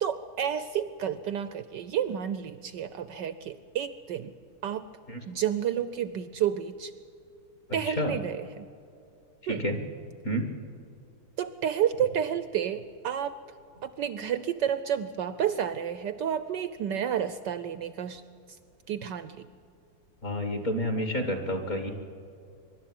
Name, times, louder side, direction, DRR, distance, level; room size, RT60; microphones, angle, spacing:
voice 1, 0.0-4.3 4.6-4.9 5.3-6.9 7.7-8.7 9.5-9.6 11.4-13.4 13.8-18.2 18.9-19.4, right 9 dB, 70° right, 13 dB, 1.1 m, -30 dB
voice 2, 20.2-21.9, equal, 35° left, 6 dB, 2.0 m, -29 dB
24.0 x 12.0 x 9.3 m, 2.5 s
omnidirectional pair, 2.4 m